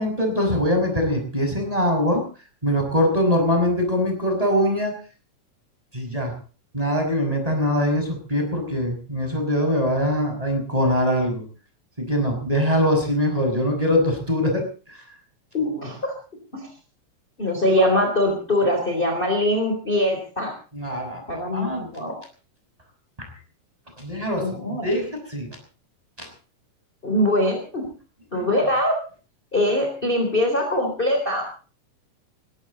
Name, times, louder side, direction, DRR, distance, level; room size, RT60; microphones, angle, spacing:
voice 1, 0.0-2.2 2.6-4.9 5.9-6.3 6.7-11.4 12.0-15.0 20.7-21.9 23.2-23.3 24.0-25.6 26.2-26.3 28.3-28.4, equal, 10° right, 3 dB, 5.7 m, -23 dB
voice 2, 15.5-16.1 16.5-16.7 17.4-20.5 21.3-22.1 24.4-24.9 27.0-27.9 28.3-28.9 29.5-31.4, left 1 dB, 15° left, 2 dB, 3.7 m, -22 dB
20.0 x 17.0 x 4.1 m, 0.38 s
omnidirectional pair, 3.7 m